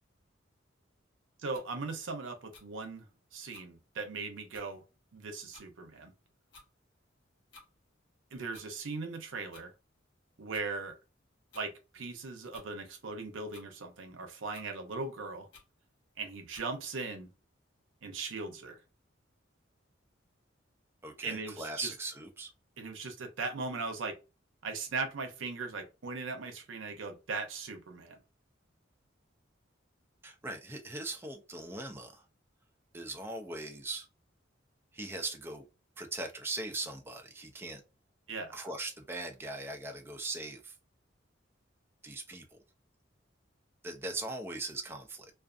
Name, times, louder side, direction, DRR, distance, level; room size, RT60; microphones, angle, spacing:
voice 1, 1.4-3.0 3.3-4.8 5.1-6.1 8.3-9.7 10.4-11.0 11.5-15.5 16.2-17.3 18.0-18.8 21.2-21.9 22.8-24.1 24.6-28.2 38.3-38.6, right 4 dB, 85° right, 0.6 m, -39 dB
sound 1, 1.5-1.7 2.5-2.7 3.5-3.7 4.2-4.3 4.5-4.7 5.5-5.7 6.5-6.7 7.5-7.7 8.5-8.7 9.5-9.7 10.5-10.7 11.5-11.7 12.5-12.7 13.5-13.7 14.5-14.7 15.5-15.7 16.5-16.7, left 3 dB, 70° left, 0.8 m, -55 dB
voice 2, 21.0-22.5 30.2-32.2 32.9-34.1 34.9-35.6 36.0-37.8 38.5-40.7 42.0-42.4 43.8-45.3, right 2 dB, 10° right, 0.4 m, -40 dB
2.4 x 2.3 x 2.4 m
head